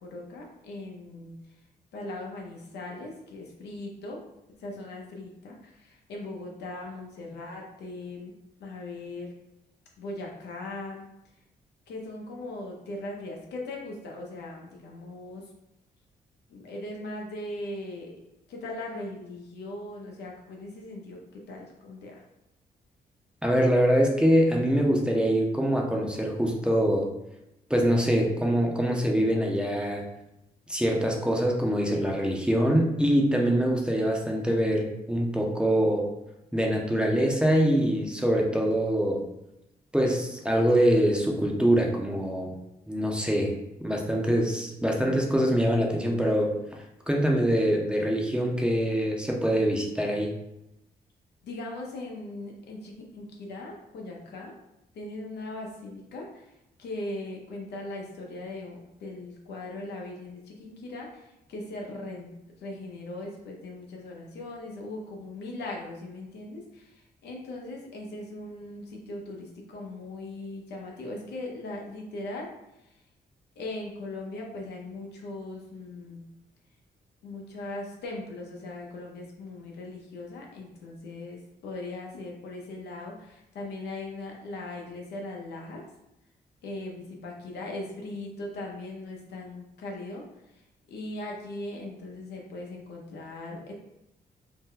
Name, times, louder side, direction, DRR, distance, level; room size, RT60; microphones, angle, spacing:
voice 1, 0.0-1.4 1.9-4.2 4.6-8.3 8.6-9.3 10.0-11.1 11.9-15.4 16.5-18.2 18.5-22.2 51.4-54.5 54.9-56.5 56.8-62.3 62.6-72.5 73.6-76.2 77.2-85.8 86.6-90.2 90.5-90.6 90.9-93.7, left 2 dB, 85° left, -1 dB, 0.7 m, -39 dB
voice 2, 23.4-27.1 27.7-30.0 30.7-36.1 36.5-39.2 39.9-42.6 42.9-43.5 43.8-46.5 47.1-50.3, equal, 5° right, 0 dB, 0.6 m, -24 dB
2.8 x 2.2 x 3.7 m, 0.88 s
cardioid pair, 75°, 17 cm